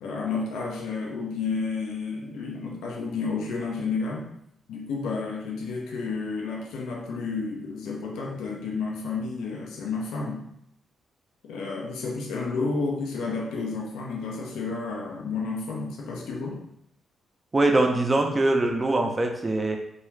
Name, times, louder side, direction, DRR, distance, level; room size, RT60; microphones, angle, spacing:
voice 1, 0.0-4.3 4.7-10.5 11.4-16.6, left 4 dB, 80° left, -1 dB, 0.5 m, -31 dB
voice 2, 17.5-19.8, right 2 dB, 30° right, 3 dB, 0.5 m, -22 dB
2.3 x 2.3 x 3.1 m, 0.75 s
hypercardioid pair, 45°, 0 cm